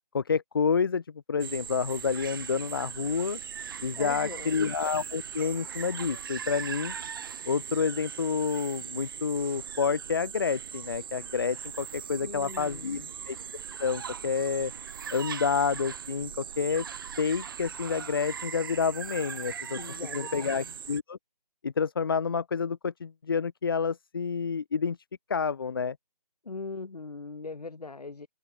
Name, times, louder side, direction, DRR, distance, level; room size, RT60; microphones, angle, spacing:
voice 1, 0.1-1.0 1.3-3.4 3.8-6.9 7.5-13.4 13.8-14.7 15.1-16.9 17.2-19.8 20.1-21.2 21.6-25.0 25.3-26.0, left 5 dB, 35° left, 0.6 m, -29 dB
sound 1, 1.4-21.0, right 8 dB, 30° right, 2.9 m, -39 dB
voice 2, 4.0-4.7 12.2-13.1 19.7-20.7 26.4-28.3, left 3 dB, 70° left, 6.0 m, -40 dB
figure-of-eight pair, 165°, 21 cm